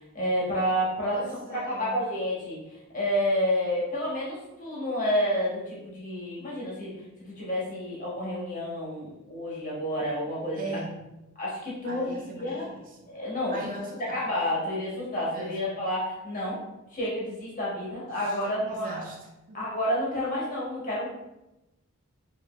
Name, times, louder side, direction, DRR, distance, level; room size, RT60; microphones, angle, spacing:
voice 1, 0.1-1.2 1.7-2.6 2.9-6.9 7.2-10.8 11.4-12.6 13.1-13.6 14.1-16.6 16.9-19.1 19.5-21.1, equal, 35° left, -6 dB, 1.4 m, -29 dB
voice 2, 1.1-2.0 10.5-11.2 11.8-13.2 13.5-14.3 15.3-15.8 18.1-19.6, right 2 dB, 40° right, 0 dB, 0.6 m, -40 dB
5.0 x 2.9 x 2.5 m, 0.94 s
head